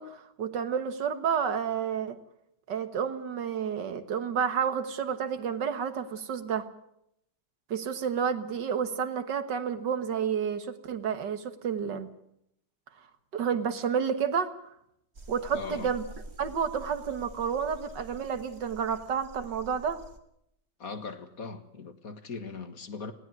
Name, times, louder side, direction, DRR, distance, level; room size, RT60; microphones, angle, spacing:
voice 1, 0.0-2.2 2.7-6.7 7.7-12.1 13.3-14.5 15.3-16.0 16.4-20.0, right 7 dB, 75° right, 11 dB, 2.1 m, -30 dB
sound 1, 15.1-20.2, right 2 dB, 35° right, 1.9 m, -47 dB
voice 2, 15.5-15.9 20.8-23.1, left 4 dB, 50° left, 9 dB, 2.0 m, -39 dB
20.0 x 16.5 x 9.4 m, 0.77 s
omnidirectional pair, 1.9 m